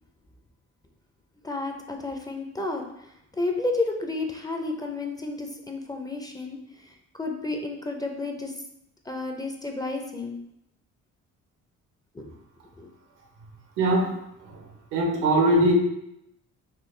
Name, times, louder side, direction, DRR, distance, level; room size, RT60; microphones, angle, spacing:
voice 1, 1.4-8.5 9.1-10.4 12.1-12.3 12.8-12.9, left 2 dB, 15° left, 2 dB, 0.4 m, -32 dB
voice 2, 13.8-14.1 14.5-14.6 14.9-15.7, right 1 dB, 85° right, 1 dB, 0.9 m, -21 dB
3.8 x 2.3 x 3.1 m, 0.81 s
cardioid pair, 90°, 30 cm